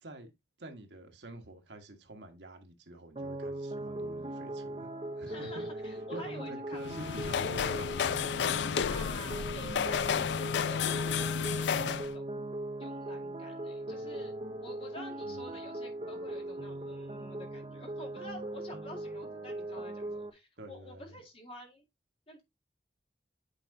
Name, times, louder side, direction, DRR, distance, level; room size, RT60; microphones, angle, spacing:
voice 1, 0.0-0.3 0.6-4.9 5.2-5.7 6.1-8.1 15.2-15.6 20.6-21.2, right 1 dB, 75° right, 1.4 m, -47 dB
sound 1, 3.2-20.3, right 1 dB, 35° right, 0.8 m, -40 dB
voice 2, 5.3-6.9 8.8-10.1 10.7-12.3 12.8-14.3 14.6-21.8 22.3-22.4, left 1 dB, 30° left, 2.1 m, -49 dB
sound 2, 6.8-12.1, left 7 dB, 80° left, 0.4 m, -31 dB
8.7 x 4.8 x 2.7 m
head